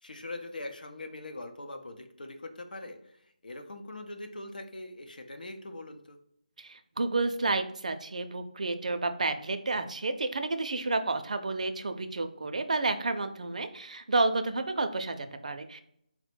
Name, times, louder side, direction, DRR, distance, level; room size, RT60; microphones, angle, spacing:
voice 1, 0.0-6.2, left 2 dB, 80° left, 6 dB, 0.7 m, -42 dB
voice 2, 6.6-15.8, right 3 dB, 55° right, 8 dB, 0.4 m, -30 dB
4.2 x 2.1 x 4.3 m, 0.72 s
figure-of-eight pair, 175°, 5 cm